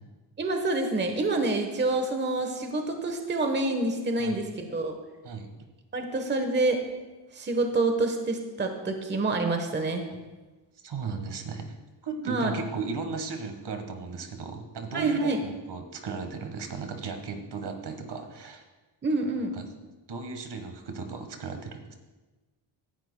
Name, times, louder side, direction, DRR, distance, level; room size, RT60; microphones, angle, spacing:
voice 1, 0.4-5.0 5.9-6.8 7.3-10.0 12.3-12.5 14.9-15.4 19.0-19.5, right 2 dB, 20° right, 5 dB, 1.1 m, -27 dB
voice 2, 10.8-11.7 12.0-18.6 19.5-19.6 20.1-21.9, right 4 dB, 55° right, 5 dB, 1.5 m, -35 dB
17.5 x 11.0 x 2.2 m, 1.2 s
cardioid pair, 110°, 48 cm